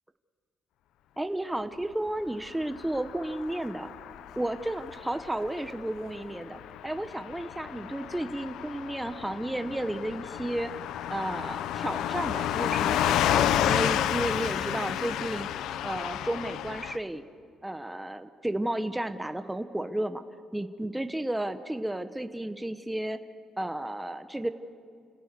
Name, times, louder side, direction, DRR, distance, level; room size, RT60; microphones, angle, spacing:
voice 1, 1.2-3.9 4.3-10.7 11.1-15.5 15.8-17.2 17.6-20.2 20.5-23.2 23.6-24.5, right 1 dB, 10° right, 10 dB, 1.0 m, -33 dB
Car passing by / Truck, 2.6-17.0, left 11 dB, 85° left, 0.7 m, -31 dB
29.5 x 17.5 x 6.8 m, 2.2 s
cardioid pair, 90°, 0 cm